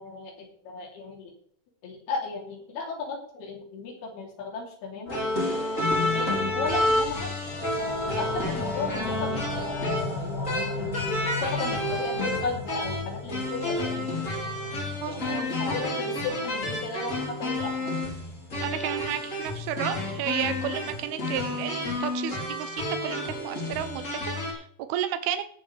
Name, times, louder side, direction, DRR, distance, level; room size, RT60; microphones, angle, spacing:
voice 1, 0.0-1.3 1.8-5.3 6.0-7.3 7.8-14.2 15.1-17.9, left 4 dB, 90° left, -1 dB, 5.0 m, -35 dB
sound 1, 5.1-24.5, left 1 dB, 20° left, 3.1 m, -30 dB
sound 2, 7.4-18.8, left 2 dB, 25° right, 0.7 m, -38 dB
voice 2, 15.0-15.4 18.6-25.4, right 11 dB, 85° right, 10 dB, 2.7 m, -32 dB
18.0 x 7.3 x 3.3 m, 0.65 s
omnidirectional pair, 4.4 m